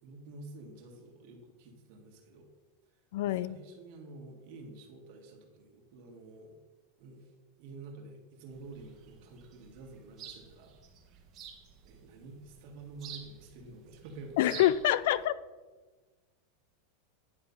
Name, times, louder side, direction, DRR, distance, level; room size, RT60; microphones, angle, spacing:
voice 1, 0.0-2.5 3.3-6.6 7.0-7.3 7.6-10.7 11.8-14.6, right 3 dB, 55° right, 1.8 m, -49 dB
voice 2, 3.1-3.6 14.4-15.3, left 13 dB, 70° left, 0.3 m, -26 dB
sound 1, 8.5-15.2, right 8 dB, 40° right, 1.3 m, -50 dB
9.9 x 3.7 x 5.4 m
supercardioid pair, 130°, 0 cm